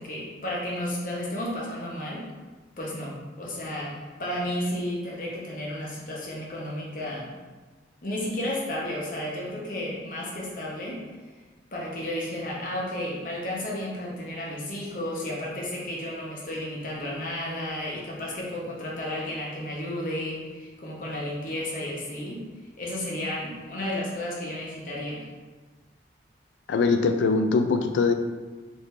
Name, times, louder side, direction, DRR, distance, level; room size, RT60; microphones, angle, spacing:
voice 1, 0.0-2.3 2.8-7.3 8.0-11.0 11.7-22.4 22.8-25.3, left 1 dB, 45° left, -4 dB, 0.8 m, -32 dB
voice 2, 26.7-28.1, left 4 dB, 85° left, 6 dB, 0.3 m, -22 dB
3.3 x 2.6 x 3.2 m, 1.3 s
head